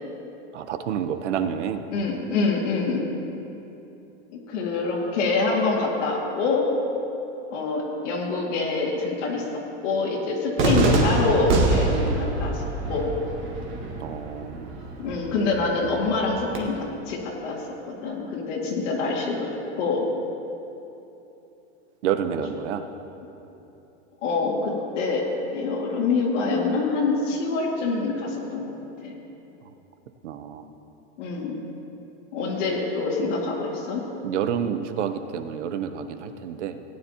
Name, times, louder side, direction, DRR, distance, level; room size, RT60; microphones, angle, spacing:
voice 1, 0.5-1.8 14.0-14.9 22.0-22.9 30.2-30.7 34.2-36.8, right 8 dB, 75° right, 9 dB, 0.9 m, -29 dB
voice 2, 1.9-3.1 4.3-6.7 7.5-9.4 9.8-13.1 15.0-17.6 17.9-19.5 19.8-20.0 24.2-25.2 25.5-28.7 29.0-29.2 31.2-31.6 32.3-34.0, left 3 dB, 85° left, -4 dB, 2.3 m, -25 dB
Cheering / Fireworks, 10.6-16.6, right 3 dB, 35° right, 1.7 m, -26 dB
18.5 x 9.7 x 2.9 m, 3.0 s
supercardioid pair, 155°, 36 cm